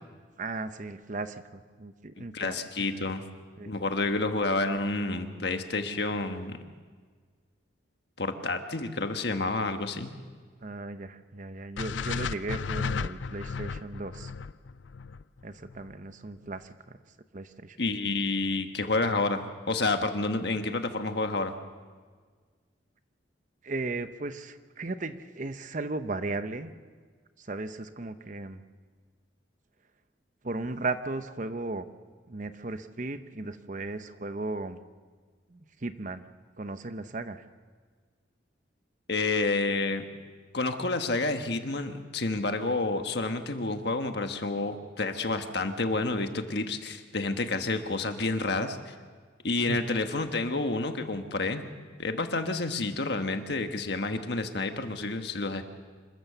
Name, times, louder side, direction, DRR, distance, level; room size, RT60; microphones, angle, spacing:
voice 1, 0.4-2.6 2.8-3.0 3.6-3.7 10.6-14.3 15.4-17.0 17.3-17.8 23.6-26.7 27.4-28.6 30.4-31.9 32.3-34.8 35.5-36.2 36.6-37.4 49.7-49.8, right 2 dB, 45° right, 10 dB, 0.8 m, -36 dB
voice 2, 2.2-3.2 3.7-6.6 8.2-10.1 17.8-21.5 39.1-40.0 40.5-48.9 49.4-51.6 52.0-55.6, left 3 dB, 60° left, 6 dB, 1.5 m, -29 dB
sound 1, 11.8-15.9, left 5 dB, 80° left, 0.5 m, -34 dB
26.5 x 14.0 x 7.0 m, 1.5 s
head